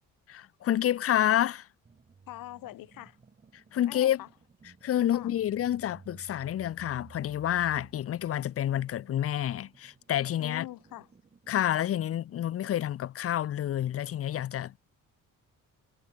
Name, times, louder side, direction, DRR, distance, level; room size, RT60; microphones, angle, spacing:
voice 1, 0.3-1.7 3.7-4.2 4.8-10.7 11.5-14.8, left 11 dB, 45° left, 1.0 m, -28 dB
sound 1, 1.8-12.3, right 5 dB, 25° right, 7.9 m, -56 dB
voice 2, 2.3-3.2 3.8-4.3 5.1-5.3 10.4-11.1, left 16 dB, 85° left, 5.7 m, -43 dB
cardioid pair, 160°, 33 cm